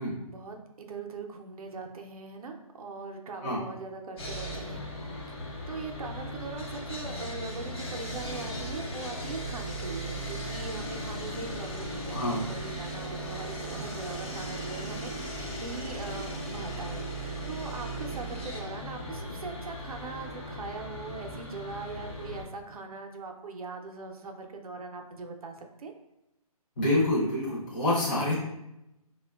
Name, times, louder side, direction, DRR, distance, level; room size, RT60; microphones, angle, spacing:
voice 1, 0.2-4.8 5.3-25.9, right 4 dB, 70° right, 3 dB, 0.5 m, -41 dB
Sawing, 4.2-22.4, equal, 40° left, 0.8 m, -37 dB
voice 2, 12.1-12.5 26.8-28.3, left 1 dB, 15° left, -8 dB, 0.5 m, -27 dB
4.3 x 2.1 x 2.2 m, 0.89 s
hypercardioid pair, 165°, 19 cm